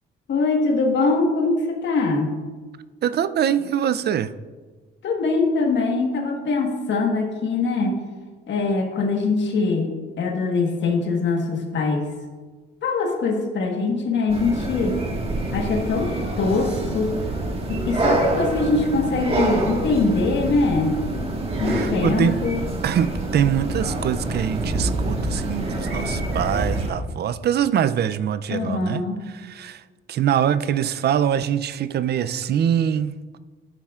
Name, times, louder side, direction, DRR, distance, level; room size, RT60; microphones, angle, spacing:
voice 1, 0.3-2.4 5.0-8.0 8.5-9.9 10.2-12.1 12.8-15.0 15.5-17.2 17.7-21.0 21.6-22.6 28.5-29.2, left 3 dB, 65° left, 2 dB, 1.5 m, -22 dB
voice 2, 3.0-4.3 21.7-22.4 22.8-29.8 30.1-33.4, right 9 dB, 55° right, 14 dB, 0.5 m, -23 dB
sound 1, 14.3-26.9, right 2 dB, 30° right, 1.6 m, -26 dB
sound 2, 17.6-18.2 18.6-18.7 19.7-20.3 21.5-23.2 23.6-23.9 24.9-25.5 25.8-26.9 27.3-27.4, right 1 dB, 75° right, 1.9 m, -42 dB
11.5 x 9.0 x 2.4 m, 1.4 s
cardioid pair, 90°, 20 cm